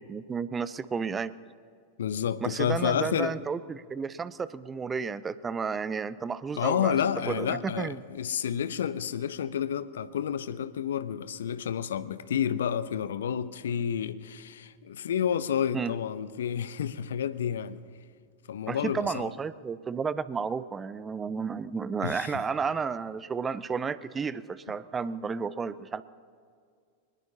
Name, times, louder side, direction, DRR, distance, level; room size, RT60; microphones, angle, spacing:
voice 1, 0.0-1.3 2.4-7.0 7.3-8.0 15.7-15.9 18.7-26.0, right 5 dB, 20° right, 0.5 m, -32 dB
voice 2, 2.0-3.3 6.6-17.8 18.5-19.3 22.0-22.4, left 8 dB, 65° left, 0.6 m, -30 dB
24.0 x 20.0 x 2.8 m
figure-of-eight pair, 90°, 0 cm